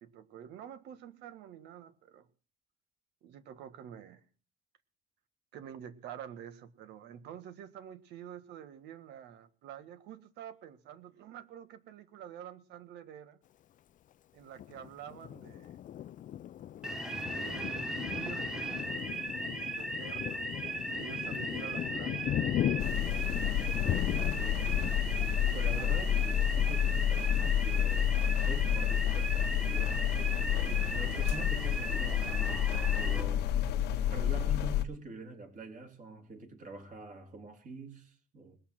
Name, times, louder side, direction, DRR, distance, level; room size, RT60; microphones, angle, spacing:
voice 1, 0.0-2.3 3.2-4.2 5.5-13.4 14.3-15.8 17.2-22.4, right 9 dB, 80° right, 1.6 m, -48 dB
Thunder, 14.6-28.9 29.4-29.5 29.8-30.4, left 11 dB, 50° left, 0.6 m, -38 dB
sound 1, 16.8-33.2, right 1 dB, 5° right, 1.5 m, -37 dB
sound 2, 22.8-34.8, left 10 dB, 80° left, 1.1 m, -30 dB
voice 2, 23.7-24.9 25.5-28.2 28.4-30.5 30.9-33.6 34.1-38.6, right 2 dB, 50° right, 3.6 m, -46 dB
21.0 x 6.9 x 6.0 m
cardioid pair, 110°, 17 cm